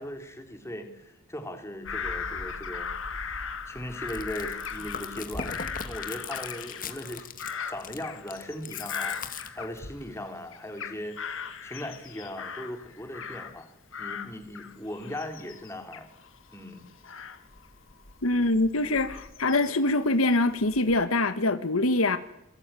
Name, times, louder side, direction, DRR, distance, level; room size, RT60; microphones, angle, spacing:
voice 1, 0.0-2.9 3.7-5.5 5.8-7.3 7.7-11.2 11.6-13.7 14.0-16.1 16.5-16.8, left 1 dB, 15° left, 3.7 m, -38 dB
Bird vocalization bird call bird song / Crow, 1.8-10.2 10.5-13.6 13.9-19.9 20.5-21.0, left 6 dB, 65° left, 2.1 m, -38 dB
Chewing mastication, 3.9-10.0, left 5 dB, 40° left, 2.1 m, -39 dB
voice 2, 18.2-22.2, left 2 dB, 80° left, 1.6 m, -24 dB
26.5 x 23.0 x 9.2 m
head